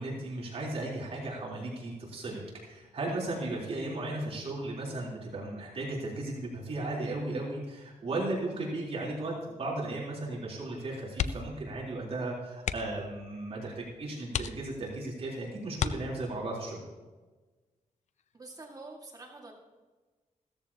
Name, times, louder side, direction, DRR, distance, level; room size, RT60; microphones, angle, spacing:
voice 1, 0.0-16.8, right 2 dB, 50° right, -4 dB, 3.7 m, -36 dB
sound 1, 11.1-11.7 11.9-12.1 12.6-13.1 13.7-13.8 14.3-15.0 15.7-16.5 18.1-18.4 18.8-18.9, left 8 dB, 65° left, 0.6 m, -34 dB
voice 2, 18.3-19.5, right 2 dB, 30° right, 0 dB, 1.9 m, -46 dB
16.0 x 14.0 x 2.9 m, 1.3 s
wide cardioid pair, 135°, 13 cm